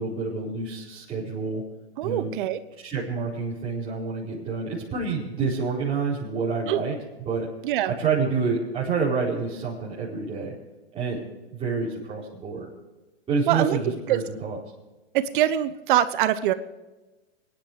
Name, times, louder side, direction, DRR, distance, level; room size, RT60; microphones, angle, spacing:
voice 1, 0.0-1.6 2.0-2.3 2.8-7.0 7.2-7.5 7.9-10.5 10.9-11.2 11.5-12.7 13.3-14.6, right 4 dB, 15° right, -8 dB, 4.6 m, -28 dB
voice 2, 2.0-2.6 6.7-6.8 7.6-7.9 13.5-13.8 14.1-14.2 15.1-16.5, right 12 dB, 50° right, 13 dB, 0.9 m, -23 dB
23.0 x 10.5 x 5.0 m, 1.1 s
hypercardioid pair, 135°, 33 cm